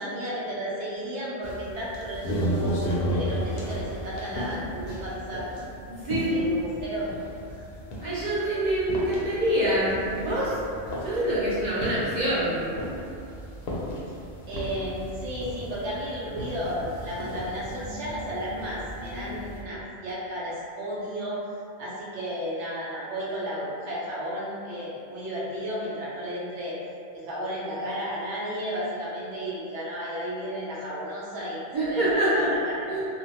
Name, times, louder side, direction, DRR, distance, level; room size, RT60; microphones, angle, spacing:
voice 1, 0.0-5.5 6.3-7.1 7.5-7.7 14.1-14.2 14.5-21.4 21.8-26.8 27.1-31.6 31.9-32.9, equal, 85° right, -7 dB, 1.0 m, -33 dB
sound 1, 1.4-19.6, equal, 65° left, 0.7 m, -34 dB
voice 2, 5.9-6.4 8.0-10.6 11.0-12.7 31.7-32.5 32.9-33.1, right 1 dB, 50° right, -9 dB, 0.7 m, -25 dB
3.0 x 2.1 x 2.8 m, 2.6 s
omnidirectional pair, 1.2 m